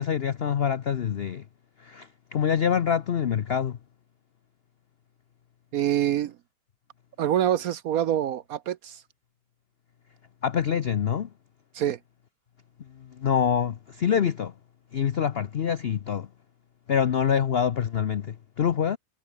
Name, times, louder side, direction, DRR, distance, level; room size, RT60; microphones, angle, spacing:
voice 1, 0.0-1.4 1.8-3.8 10.4-11.3 12.9-14.5 14.9-16.3 16.9-19.0, left 8 dB, 75° left, 0.5 m, -25 dB
voice 2, 5.7-6.3 7.2-9.0 11.7-12.0, right 11 dB, 65° right, 0.9 m, -25 dB
omnidirectional pair, 2.0 m